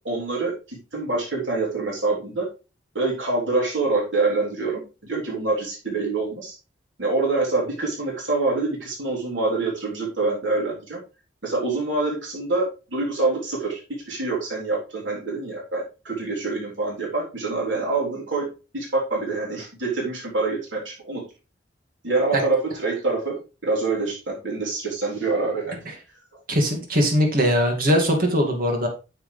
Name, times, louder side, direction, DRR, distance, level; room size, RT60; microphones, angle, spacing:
voice 1, 0.0-2.5 2.9-6.6 7.0-11.0 11.4-13.8 14.1-18.5 18.7-21.2 22.0-23.4 23.6-25.8, right 3 dB, 85° right, -3 dB, 3.7 m, -25 dB
voice 2, 26.5-28.9, equal, 50° right, 2 dB, 2.4 m, -20 dB
9.6 x 6.9 x 3.4 m, 0.31 s
head